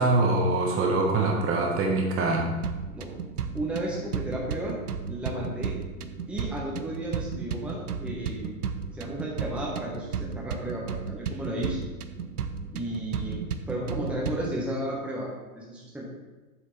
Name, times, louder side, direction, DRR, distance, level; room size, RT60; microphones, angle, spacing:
voice 1, 0.0-2.5, right 2 dB, 30° right, 0 dB, 1.4 m, -24 dB
sound 1, 2.6-14.6, right 6 dB, 90° right, 0.7 m, -34 dB
voice 2, 3.5-4.8 5.1-5.8 6.3-8.6 8.9-11.9 12.7-16.1, right 1 dB, 5° right, -4 dB, 1.2 m, -33 dB
7.6 x 6.4 x 3.3 m, 1.2 s
hypercardioid pair, 110°, 44 cm